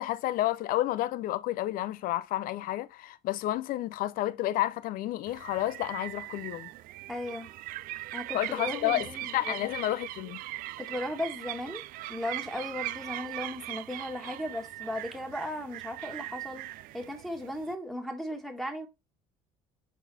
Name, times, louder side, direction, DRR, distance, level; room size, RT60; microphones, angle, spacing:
voice 1, 0.0-6.7 8.3-9.1 9.3-10.4, left 15 dB, 65° left, 0.6 m, -30 dB
sound 1, 5.3-17.7, right 16 dB, 65° right, 0.4 m, -40 dB
voice 2, 7.1-7.5 8.1-9.7 10.8-11.8 12.1-16.7 16.9-18.9, left 1 dB, 5° left, 1.6 m, -36 dB
5.9 x 4.1 x 4.1 m
supercardioid pair, 90°, 16 cm